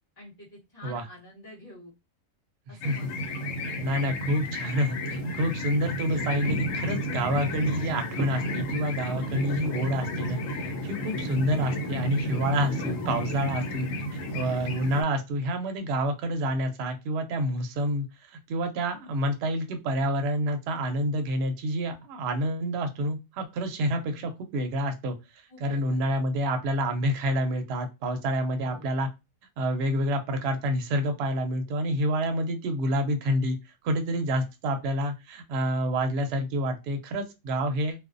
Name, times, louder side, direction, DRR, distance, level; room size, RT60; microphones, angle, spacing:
voice 1, 0.2-1.9 2.7-3.2 24.1-24.2 25.5-26.0 28.6-28.9, left 2 dB, 20° left, -8 dB, 0.8 m, -48 dB
voice 2, 2.7-3.1 3.8-10.4 10.8-25.1 25.6-29.1 29.6-33.6 33.8-38.0, equal, 65° right, 6 dB, 0.7 m, -28 dB
sound 1, 2.8-15.0, equal, 80° left, 1.0 m, -32 dB
2.5 x 2.0 x 2.4 m, 0.25 s
omnidirectional pair, 1.4 m